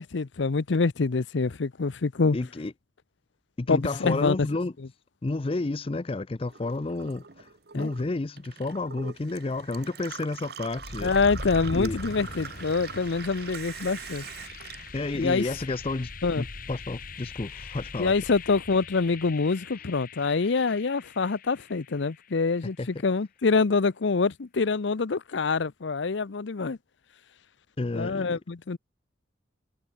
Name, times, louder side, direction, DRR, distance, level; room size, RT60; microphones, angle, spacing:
voice 1, 0.0-2.4 3.7-4.4 7.7-7.9 11.0-14.2 15.1-15.5 16.2-16.5 18.0-26.8 27.9-28.8, left 4 dB, 75° left, 0.6 m, -26 dB
voice 2, 2.3-2.7 3.6-4.7 5.2-7.5 7.7-11.1 11.7-12.0 14.9-18.1 22.8-22.9 27.8-28.4, left 2 dB, 30° left, 0.5 m, -31 dB
Gurgling / Water tap faucet / Sink (filling or washing), 6.4-15.9 16.2-17.1, right 6 dB, 55° right, 1.0 m, -43 dB
sound 1, 10.7-22.5, left 3 dB, 50° left, 2.7 m, -41 dB
head